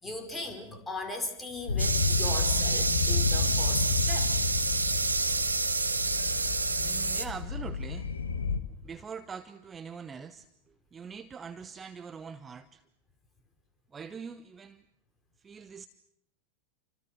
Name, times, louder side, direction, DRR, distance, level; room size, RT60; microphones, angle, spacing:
voice 1, 0.0-4.3 8.7-8.8, left 2 dB, 10° left, 4 dB, 4.8 m, -38 dB
sound 1, 1.7-8.6, left 5 dB, 75° left, 1.6 m, -31 dB
sound 2, 1.8-7.2, right 3 dB, 80° right, 1.5 m, -28 dB
voice 2, 6.8-8.1 8.8-10.5 10.9-12.8 13.9-14.8 15.4-15.9, right 6 dB, 20° right, 12 dB, 0.9 m, -43 dB
28.5 x 26.0 x 6.2 m, 0.75 s
figure-of-eight pair, 90°, 0 cm